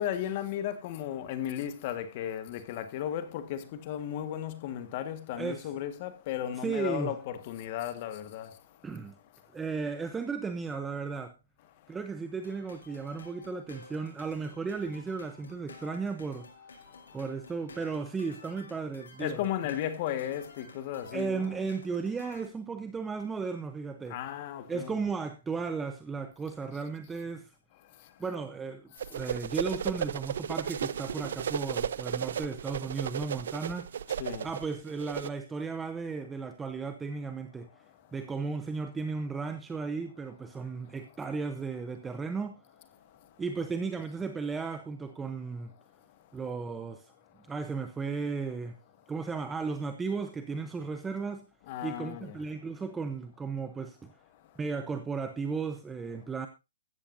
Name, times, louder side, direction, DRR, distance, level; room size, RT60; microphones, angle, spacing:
voice 1, 0.0-8.6 19.2-21.7 24.1-25.0 34.1-34.5 51.7-52.4, left 10 dB, 35° left, 1.6 m, -35 dB
voice 2, 5.4-5.7 6.5-7.1 8.8-9.2 9.5-11.3 11.9-16.5 17.1-19.5 21.1-24.2 24.7-27.5 28.2-33.9 34.4-37.7 38.1-42.6 43.4-45.7 46.3-47.1 47.5-48.8 49.1-51.5 51.8-54.1 54.6-56.5, right 4 dB, 10° right, 0.8 m, -35 dB
sound 1, 12.4-22.5, left 4 dB, 90° left, 5.7 m, -52 dB
sound 2, 29.0-35.3, right 8 dB, 65° right, 0.8 m, -34 dB
15.5 x 13.5 x 2.6 m
hypercardioid pair, 160°, 0 cm